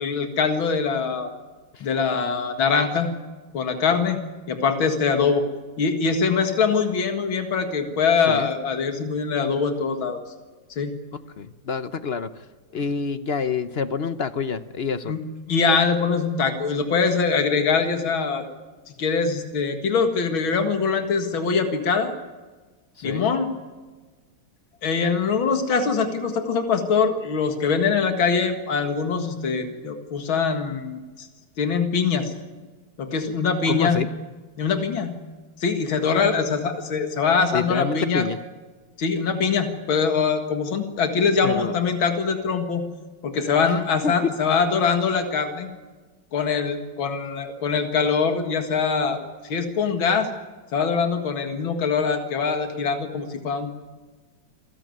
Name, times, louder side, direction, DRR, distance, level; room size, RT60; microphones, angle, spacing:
voice 1, 0.0-1.3 1.8-3.1 3.5-4.2 4.5-5.4 5.8-10.2 10.7-10.9 12.7-12.8 15.1-15.2 15.5-18.5 19.0-22.1 23.0-23.5 24.8-31.3 31.6-32.3 33.0-34.0 34.6-35.2 35.6-38.3 39.0-42.8 43.2-45.7 46.3-50.3 50.7-53.8, left 5 dB, 85° left, 6 dB, 2.7 m, -23 dB
voice 2, 11.4-12.5 12.7-15.1 23.0-23.3 33.7-34.1 37.5-38.4 41.4-41.7 44.0-44.3, left 5 dB, 50° left, 12 dB, 0.8 m, -27 dB
27.5 x 16.5 x 9.3 m, 1.3 s
omnidirectional pair, 2.2 m